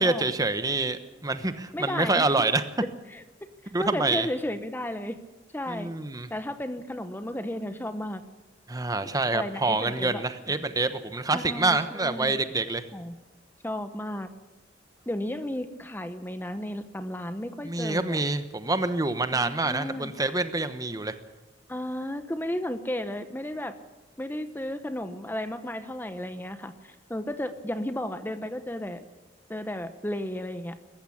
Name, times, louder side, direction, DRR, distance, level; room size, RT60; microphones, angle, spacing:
voice 1, 0.0-2.6 3.7-4.3 5.7-6.3 8.7-12.9 17.6-21.1, right 3 dB, 20° right, 10 dB, 1.0 m, -26 dB
voice 2, 1.7-2.3 3.1-5.2 5.5-5.9 6.3-8.2 9.3-10.2 11.3-12.4 12.9-13.2 13.6-14.3 15.1-18.2 19.3-20.1 21.7-23.7 24.2-29.0 29.5-30.8, left 1 dB, 10° left, 10 dB, 0.9 m, -34 dB
21.0 x 14.5 x 8.6 m, 1.1 s
head